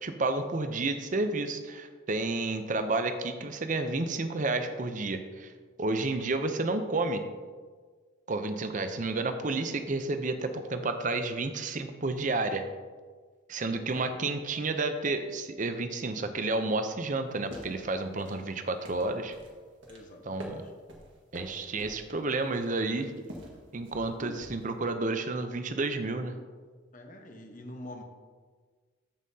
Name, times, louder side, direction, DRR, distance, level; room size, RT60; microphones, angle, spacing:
voice 1, 0.0-5.5 5.8-7.2 8.3-12.7 13.5-19.3 20.3-20.6 21.3-23.1 23.7-26.3, right 3 dB, 40° right, 8 dB, 0.6 m, -31 dB
sound 1, 17.3-24.8, equal, 75° right, 1.6 m, -48 dB
voice 2, 19.9-20.7 24.2-24.3 26.9-28.0, left 1 dB, 45° left, 3 dB, 1.0 m, -45 dB
14.0 x 5.6 x 2.8 m, 1.5 s
head